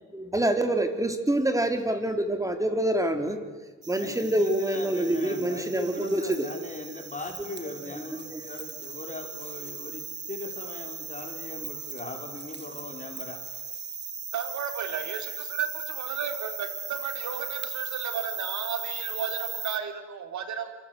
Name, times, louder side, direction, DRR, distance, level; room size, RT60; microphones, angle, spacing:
voice 1, 0.1-3.4 3.9-6.5 8.1-8.4, right 1 dB, 10° right, 6 dB, 3.8 m, -26 dB
sound 1, 3.8-19.8, right 6 dB, 35° right, 1.9 m, -38 dB
voice 2, 4.0-13.4, left 3 dB, 25° left, 3 dB, 5.0 m, -39 dB
voice 3, 14.3-20.8, right 7 dB, 70° right, 7 dB, 3.8 m, -34 dB
27.5 x 25.5 x 8.2 m, 1.3 s
cardioid pair, 90°, 30 cm